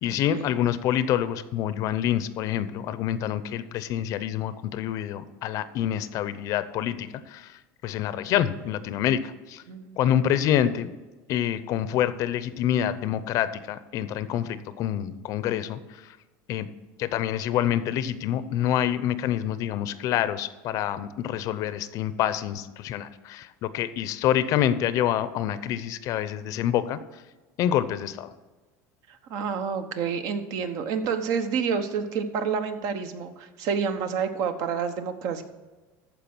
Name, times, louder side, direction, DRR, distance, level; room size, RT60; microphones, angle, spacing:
voice 1, 0.0-9.6 10.0-10.9 11.3-16.2 16.5-16.7 17.0-27.2 27.6-28.3, left 10 dB, 50° left, 14 dB, 0.6 m, -27 dB
voice 2, 9.7-10.0 29.3-35.4, right 6 dB, 55° right, 8 dB, 1.0 m, -28 dB
14.0 x 4.7 x 6.1 m, 1.2 s
supercardioid pair, 135°, 7 cm